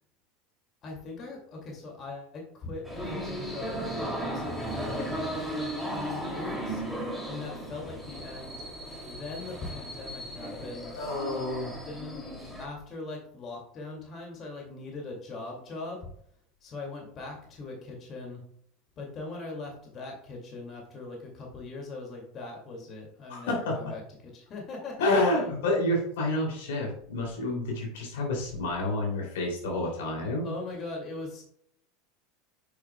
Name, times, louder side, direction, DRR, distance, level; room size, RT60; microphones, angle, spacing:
voice 1, 0.8-5.1 5.5-6.8 7.3-8.6 9.0-10.9 11.7-12.3 12.6-16.1 16.6-18.4 19.0-25.5 30.4-31.4, left 3 dB, 40° left, 0 dB, 2.3 m, -40 dB
sound 1, 2.8-12.7, right 1 dB, 5° left, 2.6 m, -36 dB
voice 2, 11.0-11.8 23.3-23.9 25.0-30.5, left 2 dB, 80° left, -1 dB, 2.8 m, -29 dB
8.1 x 6.2 x 2.3 m, 0.68 s
hypercardioid pair, 100°, 0 cm